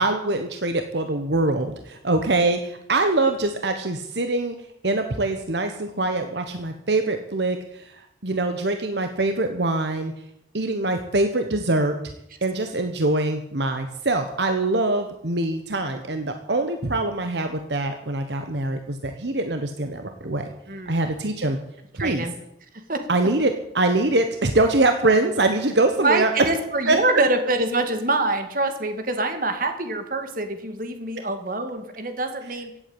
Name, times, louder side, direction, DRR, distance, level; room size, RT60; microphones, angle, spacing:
voice 1, 0.0-4.6 4.8-8.0 8.2-10.1 10.5-12.0 12.4-20.5 20.9-21.6 21.9-22.3 23.1-26.3 26.9-27.0, right 2 dB, 75° right, 6 dB, 1.3 m, -23 dB
voice 2, 20.7-21.1 22.0-22.3 22.9-23.0 26.0-32.8, right 2 dB, 50° right, 7 dB, 2.1 m, -25 dB
16.0 x 8.6 x 8.8 m, 0.79 s
head